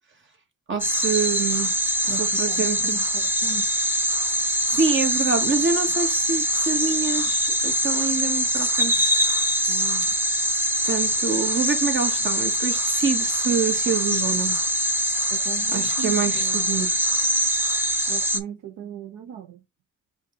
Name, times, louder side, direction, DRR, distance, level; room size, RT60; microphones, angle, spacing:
voice 1, 0.7-1.7 2.0-3.0 4.4-9.1 10.8-14.6 15.7-17.0, right 6 dB, 40° right, 1.7 m, -26 dB
sound 1, 0.8-18.4, equal, 5° right, 0.8 m, -23 dB
voice 2, 2.1-3.6 9.7-10.1 15.3-16.8 18.1-19.6, right 9 dB, 75° right, 0.8 m, -37 dB
5.1 x 2.5 x 4.0 m
cardioid pair, 90°, 30 cm